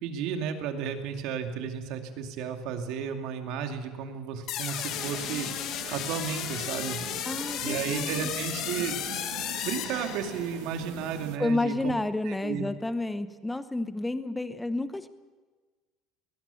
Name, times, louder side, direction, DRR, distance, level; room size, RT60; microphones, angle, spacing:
voice 1, 0.0-5.5 5.9-7.0 7.6-9.3 9.6-11.9 12.2-12.7, right 7 dB, 70° right, 5 dB, 2.5 m, -33 dB
sound 1, 4.5-10.6, left 11 dB, 55° left, 1.6 m, -34 dB
sound 2, 4.9-11.4, right 12 dB, 85° right, 1.6 m, -43 dB
voice 2, 7.3-8.3 11.4-15.1, left 2 dB, 10° left, 12 dB, 0.8 m, -30 dB
22.5 x 18.5 x 7.1 m, 1.4 s
cardioid pair, 140°, 0 cm